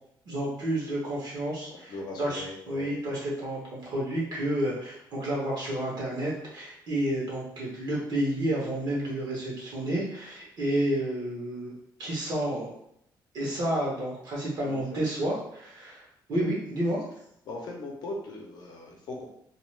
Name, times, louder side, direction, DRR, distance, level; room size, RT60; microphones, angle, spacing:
voice 1, 0.3-11.7 12.0-12.7 13.3-17.0, right 1 dB, 55° right, -5 dB, 0.9 m, -30 dB
voice 2, 1.7-2.9 14.6-15.0 16.3-16.5 17.4-19.3, left 2 dB, 60° left, -1 dB, 0.7 m, -39 dB
2.4 x 2.3 x 3.1 m, 0.74 s
cardioid pair, 160°, 8 cm